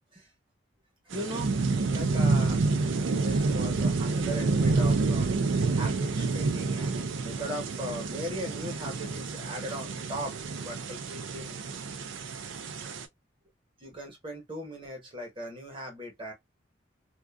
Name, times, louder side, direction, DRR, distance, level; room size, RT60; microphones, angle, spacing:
voice 1, 1.1-1.5 1.9-5.3 5.7-10.3 10.6-11.7 13.8-16.3, equal, 25° right, 1.0 m, -39 dB
sound 1, 1.1-13.1, right 3 dB, 75° right, 0.4 m, -28 dB
2.5 x 2.4 x 2.3 m
head